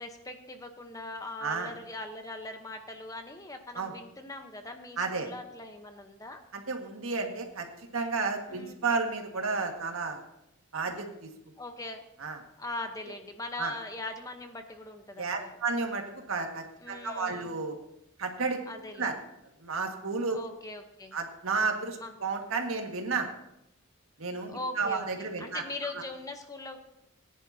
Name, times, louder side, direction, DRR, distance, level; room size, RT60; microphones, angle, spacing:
voice 1, 0.0-6.4 8.5-8.8 11.6-12.0 12.6-15.5 16.8-17.5 18.7-19.1 20.3-21.2 22.0-22.1 24.5-26.8, left 2 dB, 15° left, 6 dB, 0.8 m, -41 dB
voice 2, 1.4-1.7 3.7-3.9 5.0-5.3 6.5-7.7 7.9-10.2 10.7-11.3 12.2-12.4 13.6-13.7 15.2-17.8 18.2-18.6 19.0-19.2 19.6-20.4 21.1-23.3 24.2-25.9, right 4 dB, 75° right, 3 dB, 1.7 m, -32 dB
19.0 x 10.5 x 2.7 m, 0.84 s
head